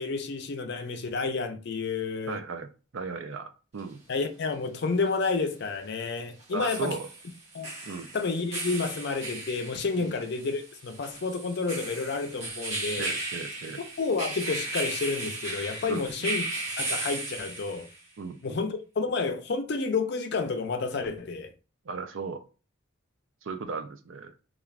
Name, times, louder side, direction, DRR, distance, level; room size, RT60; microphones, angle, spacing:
voice 1, 0.0-2.4 4.1-7.0 7.5-7.7 8.1-13.1 14.0-16.4 16.8-17.9 18.4-21.5, left 4 dB, 55° left, 0.5 m, -30 dB
voice 2, 2.3-4.0 6.5-7.1 7.8-8.1 10.0-10.2 13.0-13.8 15.9-16.3 18.2-18.6 21.8-22.4 23.4-24.3, right 4 dB, 65° right, 0.4 m, -37 dB
sound 1, 3.8-3.9 6.4-18.0, right 2 dB, 30° right, 1.3 m, -36 dB
3.2 x 2.4 x 2.4 m
head